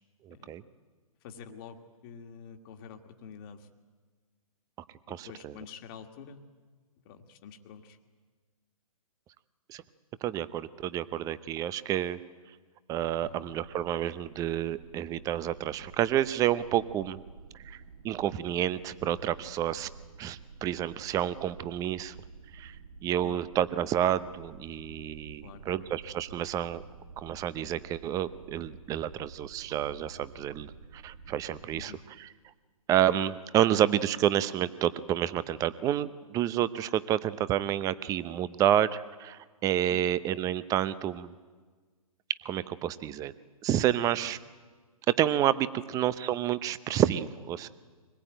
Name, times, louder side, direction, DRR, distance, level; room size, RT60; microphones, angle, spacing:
voice 1, 0.3-0.6 5.1-5.5 9.7-9.8 10.2-12.2 12.9-17.2 17.6-17.8 18.0-19.9 20.2-22.1 22.5-22.7 23.0-26.8 27.2-31.9 32.2-32.3 32.9-41.3 42.4-43.3 43.6-44.4 45.1-47.7, right 11 dB, 20° right, 16 dB, 0.7 m, -29 dB
voice 2, 1.2-3.7 5.1-6.4 7.1-8.0 13.2-13.4 23.2-23.4 25.4-25.9 31.7-32.0 33.7-33.8 39.9-40.1 45.9-46.0, left 6 dB, 40° left, 5 dB, 1.8 m, -48 dB
sound 1, 13.0-31.9, right 4 dB, 65° right, 1.8 m, -50 dB
24.5 x 20.0 x 9.1 m, 1.5 s
hypercardioid pair, 130°, 19 cm